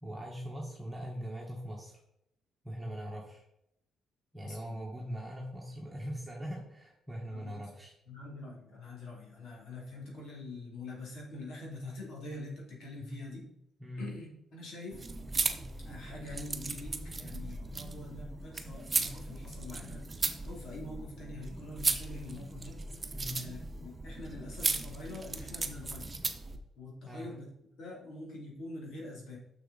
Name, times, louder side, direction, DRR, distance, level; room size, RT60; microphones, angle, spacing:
voice 1, 0.0-2.0 2.6-3.4 4.3-7.9 13.0-13.2 13.8-14.0 23.1-23.5 27.0-27.3, equal, 10° right, -3 dB, 1.4 m, -41 dB
voice 2, 4.4-4.8 7.3-7.5 8.1-13.4 14.0-15.0 15.8-22.8 23.4-26.2 26.8-27.5 27.8-29.4, left 2 dB, 75° left, -2 dB, 2.9 m, -45 dB
sound 1, 14.9-26.6, right 3 dB, 25° right, 0.9 m, -36 dB
6.5 x 6.4 x 4.1 m, 0.79 s
cardioid pair, 90°, 0 cm